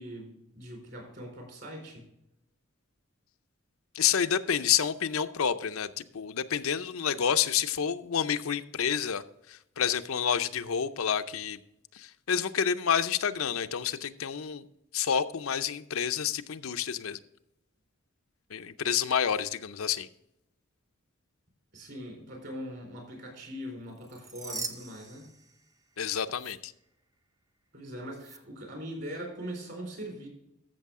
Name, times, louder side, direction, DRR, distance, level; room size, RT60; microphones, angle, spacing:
voice 1, 0.0-2.1 21.7-25.3 27.7-30.3, equal, 50° right, 1 dB, 4.2 m, -41 dB
voice 2, 3.9-11.6 11.9-14.7 14.9-17.2 18.5-20.1 26.0-26.7, left 8 dB, 75° left, 10 dB, 0.5 m, -29 dB
sound 1, 23.9-26.0 26.3-26.5 28.2-28.4, right 4 dB, 15° right, 0.5 m, -41 dB
14.0 x 6.7 x 3.6 m, 0.82 s
head